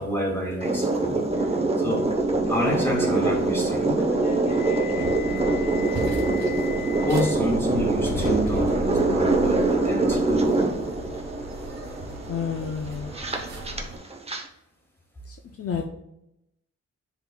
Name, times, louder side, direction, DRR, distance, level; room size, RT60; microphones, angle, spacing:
voice 1, 0.0-2.1 2.5-4.0 7.0-10.5 11.0-11.1, equal, 10° left, -2 dB, 2.4 m, -29 dB
sound 1, 0.6-14.4, right 2 dB, 20° right, 0.9 m, -24 dB
Subway metro underground, 2.1-9.7, left 3 dB, 85° left, 1.1 m, -37 dB
voice 2, 4.7-5.2 12.3-13.1 15.3-15.8, left 7 dB, 55° left, 4 dB, 0.6 m, -31 dB
sound 2, 5.0-14.0, right 1 dB, 75° right, 2.4 m, -37 dB
10.5 x 3.8 x 2.3 m, 0.82 s
wide cardioid pair, 120°, 29 cm